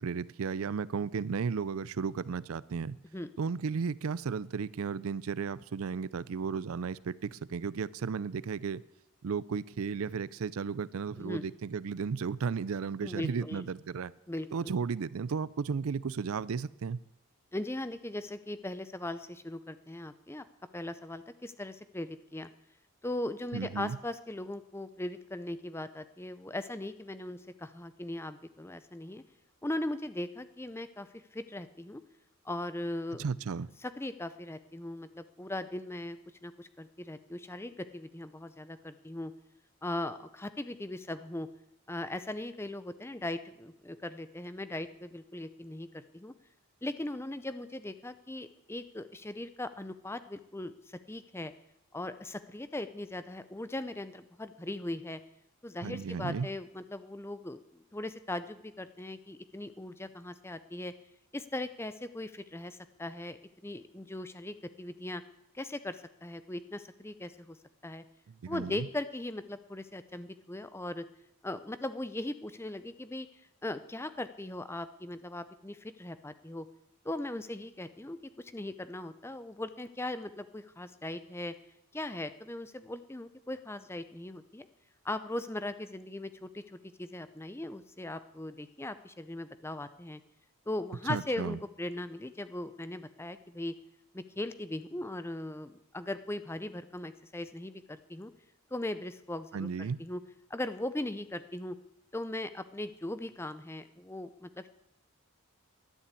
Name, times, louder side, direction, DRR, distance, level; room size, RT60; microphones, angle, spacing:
voice 1, 0.0-3.0 3.4-8.8 9.2-14.1 14.5-17.0 23.5-24.0 33.2-33.7 55.8-56.5 68.4-68.9 91.1-91.6 99.5-100.0, right 5 dB, 70° right, 20 dB, 0.4 m, -34 dB
voice 2, 13.0-13.7 14.3-14.7 17.5-20.4 20.7-22.5 23.0-29.2 29.6-32.0 32.4-33.3 33.8-39.3 39.8-41.5 41.9-46.3 46.8-51.5 51.9-55.2 55.6-60.9 61.3-65.2 65.5-67.6 67.8-68.0 68.5-71.0 71.4-73.3 73.6-76.7 77.0-81.5 81.9-84.7 85.0-90.2 90.7-93.7 94.1-98.3 98.7-100.2 100.5-101.8 102.1-104.7, left 1 dB, 10° left, 12 dB, 0.5 m, -39 dB
11.5 x 10.0 x 8.3 m, 0.84 s
head